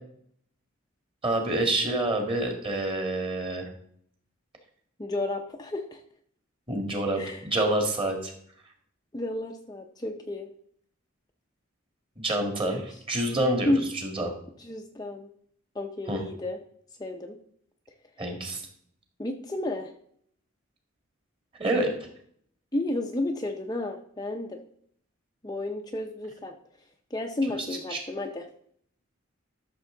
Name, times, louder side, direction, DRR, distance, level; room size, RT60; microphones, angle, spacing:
voice 1, 1.2-3.7 6.7-8.3 12.2-14.3 16.1-16.2 18.2-18.6 21.6-21.9 27.9-28.0, right 1 dB, 25° right, 3 dB, 2.0 m, -27 dB
voice 2, 5.0-6.0 7.2-7.5 9.1-10.5 12.7-12.8 13.6-13.9 14.6-15.3 15.7-16.6 17.0-17.4 19.2-19.9 22.7-24.6 25.4-26.5 27.1-28.5, left 1 dB, 20° left, 3 dB, 0.6 m, -31 dB
12.5 x 6.6 x 3.8 m, 0.65 s
head